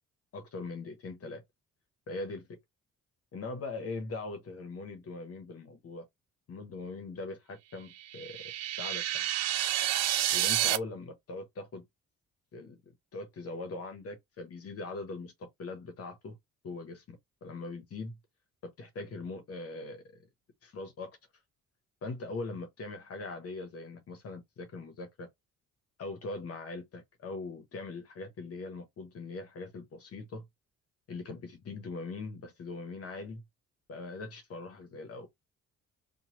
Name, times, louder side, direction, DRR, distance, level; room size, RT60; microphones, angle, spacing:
voice 1, 0.3-1.4 2.1-2.6 3.3-6.0 6.5-8.4 8.6-9.3 10.3-11.8 12.5-12.8 13.1-16.4 16.6-18.2 18.8-20.3 20.6-21.1 22.0-25.3 26.0-30.4 31.1-33.4 33.9-35.3, left 3 dB, 50° left, 0.9 m, -41 dB
sound 1, 8.0-10.8, right 12 dB, 60° right, 0.5 m, -29 dB
3.0 x 2.3 x 2.9 m
cardioid pair, 90°, 30 cm